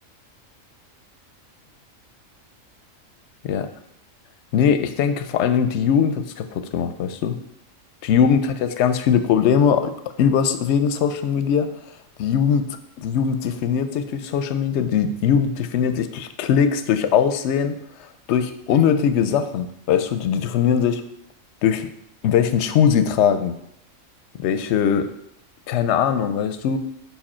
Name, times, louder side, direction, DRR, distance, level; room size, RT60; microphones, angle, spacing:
voice 1, 4.5-7.4 8.1-9.9 10.2-11.7 12.2-12.6 13.0-17.7 18.3-21.0 21.6-21.9 22.2-23.6 24.4-25.1 25.7-26.8, left 7 dB, 65° left, 9 dB, 0.8 m, -20 dB
5.4 x 4.9 x 4.3 m, 0.78 s
omnidirectional pair, 1.4 m